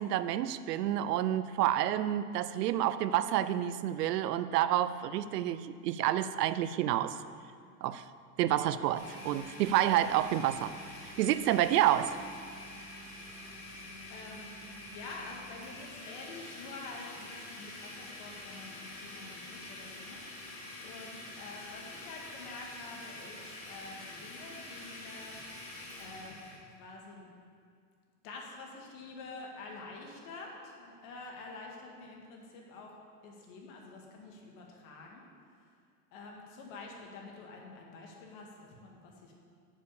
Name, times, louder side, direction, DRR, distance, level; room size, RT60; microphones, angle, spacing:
voice 1, 0.0-7.2 7.8-8.0 8.4-10.7 11.2-12.2, right 12 dB, 85° right, 14 dB, 0.6 m, -29 dB
Domestic sounds home sounds, 8.9-26.6, left 2 dB, 30° left, 2.4 m, -46 dB
voice 2, 14.1-14.5 14.9-25.3 26.0-26.5 26.8-27.3 28.2-32.9 33.2-35.3 36.1-39.3, left 3 dB, 55° left, -1 dB, 2.1 m, -47 dB
7.3 x 7.1 x 6.9 m, 2.2 s
supercardioid pair, 135°, 47 cm